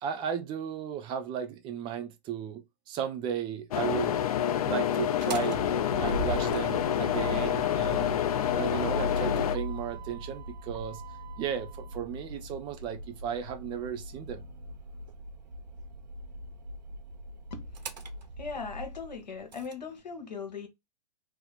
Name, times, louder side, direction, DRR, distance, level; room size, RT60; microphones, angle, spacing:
voice 1, 0.0-4.2 4.6-5.6 6.0-8.2 8.5-11.0 11.4-14.4, right 8 dB, 20° right, 0.5 m, -35 dB
sound 1, 3.7-9.6, left 10 dB, 60° left, 0.4 m, -28 dB
Motor vehicle (road), 5.0-19.7, equal, 85° right, 0.6 m, -39 dB
voice 2, 17.5-18.0 18.4-20.7, left 5 dB, 85° left, 1.0 m, -39 dB
2.8 x 2.0 x 3.9 m
hypercardioid pair, 125°, 21 cm